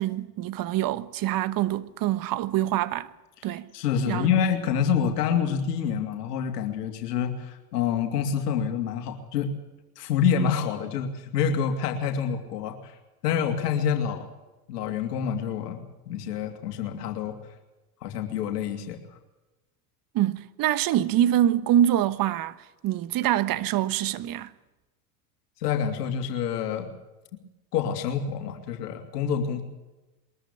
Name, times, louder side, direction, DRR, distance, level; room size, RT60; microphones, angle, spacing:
voice 1, 0.0-3.1 3.4-3.7 4.1-4.3 20.1-24.5, right 12 dB, 45° right, 1.3 m, -25 dB
voice 2, 3.7-9.5 10.0-13.0 13.2-14.3 14.7-17.4 18.0-19.0 25.6-26.9 27.7-29.6, left 7 dB, 80° left, 2.9 m, -27 dB
22.5 x 14.0 x 8.6 m
hypercardioid pair, 90°, 47 cm